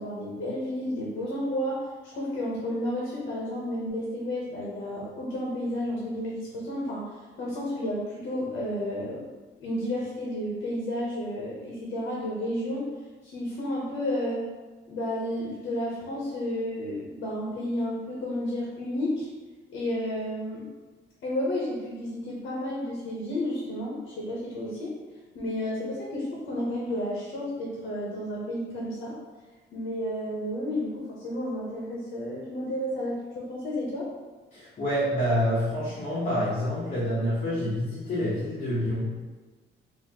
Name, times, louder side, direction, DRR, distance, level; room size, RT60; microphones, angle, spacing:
voice 1, 0.0-7.1 7.4-9.3 9.6-12.9 13.2-14.5 14.9-19.3 19.7-20.7 21.2-25.0 25.3-29.2 29.7-34.1, left 1 dB, 65° left, -4 dB, 0.8 m, -31 dB
voice 2, 34.5-39.2, equal, 35° left, -10 dB, 0.9 m, -27 dB
4.0 x 2.5 x 2.8 m, 1.3 s
cardioid pair, 175°, 20 cm